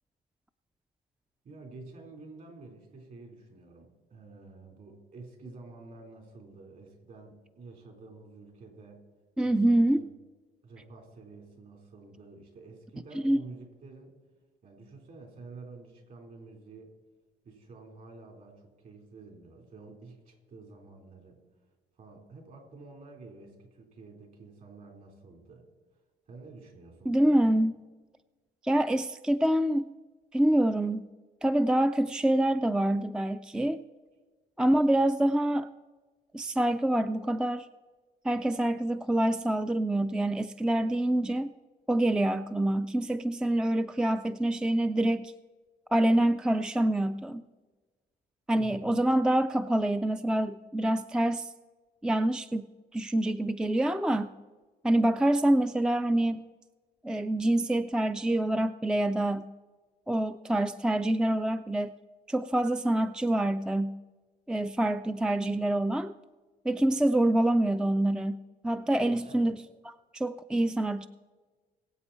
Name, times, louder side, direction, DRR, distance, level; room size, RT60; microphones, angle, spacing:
voice 1, 1.4-9.0 9.4-10.0 10.6-14.2 14.6-16.9 17.4-21.4 22.0-25.6 26.3-27.6 34.1-34.3 48.6-48.9 69.1-69.5, right 3 dB, 50° right, 2 dB, 4.1 m, -49 dB
voice 2, 9.4-10.1 13.1-13.4 27.1-27.7 28.6-29.9 30.3-31.1 31.4-33.8 34.6-35.7 36.3-37.7 38.2-41.5 41.9-45.3 45.9-47.4 48.5-51.5 52.0-54.3 54.8-56.5 57.0-59.5 60.1-61.9 62.3-64.0 64.5-66.1 66.6-71.1, right 1 dB, 5° right, 11 dB, 0.3 m, -26 dB
21.0 x 8.1 x 4.3 m, 1.3 s
cardioid pair, 110°, 17 cm